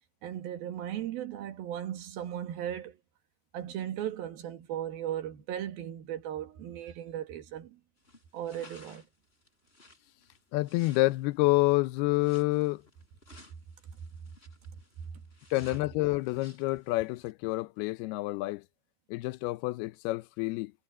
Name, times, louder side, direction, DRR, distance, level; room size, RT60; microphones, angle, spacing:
voice 1, 0.2-3.0 3.5-7.8 8.3-9.0, right 11 dB, 70° right, 3.5 m, -37 dB
sound 1, 8.0-17.3, left 2 dB, 15° left, 4.2 m, -57 dB
voice 2, 10.5-12.8 15.5-18.6 19.1-20.7, left 20 dB, 85° left, 2.6 m, -28 dB
omnidirectional pair, 4.5 m